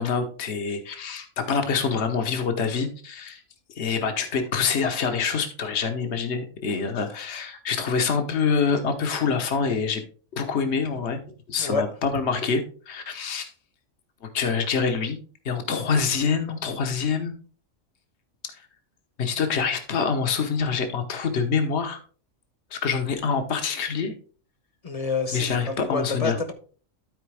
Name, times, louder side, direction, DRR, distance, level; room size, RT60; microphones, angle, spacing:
voice 1, 0.0-3.4 3.8-10.0 10.3-11.2 11.5-13.5 14.2-15.2 15.4-17.3 18.5-18.6 19.2-22.0 22.7-24.1 25.3-26.4, left 5 dB, 60° left, 1.3 m, -26 dB
voice 2, 24.8-26.5, left 4 dB, 30° left, 1.0 m, -27 dB
12.5 x 4.5 x 3.3 m
omnidirectional pair, 1.3 m